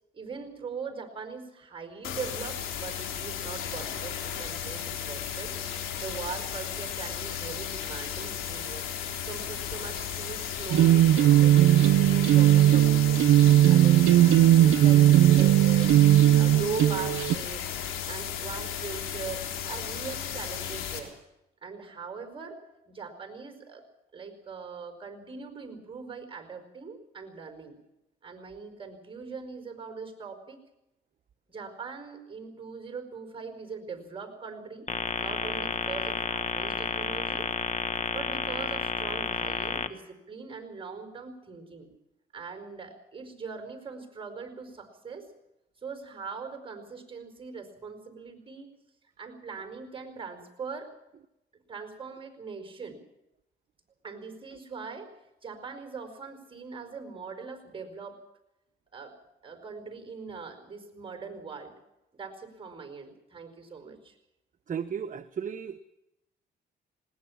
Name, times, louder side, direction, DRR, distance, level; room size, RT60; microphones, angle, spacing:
voice 1, 0.1-5.5 6.0-8.9 9.2-13.2 13.7-16.0 16.3-17.6 18.1-21.1 21.6-23.8 24.1-27.7 28.2-30.6 31.5-34.9 35.2-37.5 38.1-41.9 42.3-45.3 45.8-48.7 49.2-50.9 51.7-53.0 54.0-55.1 55.4-58.2 58.9-59.2 59.4-61.7 62.1-64.1, right 5 dB, 25° right, 6 dB, 4.8 m, -41 dB
sound 1, 2.0-21.0, left 9 dB, 85° left, 3.5 m, -35 dB
sound 2, 10.7-17.3, right 13 dB, 85° right, 0.7 m, -18 dB
sound 3, 34.9-39.9, left 5 dB, 35° left, 1.4 m, -31 dB
voice 2, 64.7-65.8, right 7 dB, 40° right, 9 dB, 0.9 m, -34 dB
20.0 x 18.5 x 7.3 m, 0.89 s
cardioid pair, 90°, 20 cm